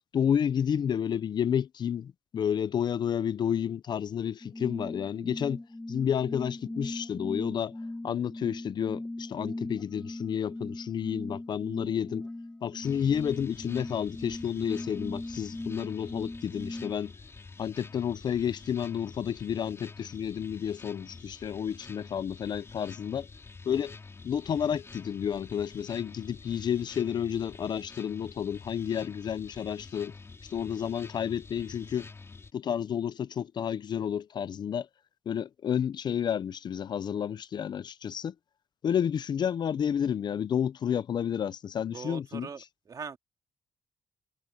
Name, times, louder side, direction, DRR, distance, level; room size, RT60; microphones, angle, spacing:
voice 1, 0.1-5.6 5.9-7.8 8.0-12.3 12.6-17.1 17.6-23.3 23.6-24.0 24.2-30.1 30.5-32.1 32.5-34.9 35.3-38.3 38.8-42.5, left 8 dB, 50° left, 0.6 m, -31 dB
sound 1, 4.4-16.9, left 2 dB, 15° left, 3.0 m, -39 dB
sound 2, 12.8-32.5, left 4 dB, 30° left, 3.8 m, -48 dB
voice 2, 41.9-42.6 42.9-43.2, right 5 dB, 45° right, 2.3 m, -40 dB
cardioid pair, 110°, 9 cm